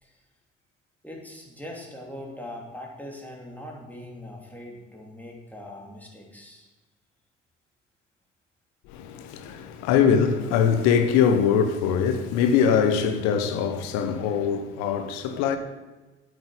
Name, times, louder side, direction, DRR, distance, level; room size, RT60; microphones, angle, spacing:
voice 1, 1.0-6.7, left 1 dB, 5° left, 3.0 m, -41 dB
voice 2, 8.8-15.6, left 7 dB, 60° left, 1.1 m, -22 dB
8.4 x 8.2 x 6.8 m
figure-of-eight pair, 50°, 30 cm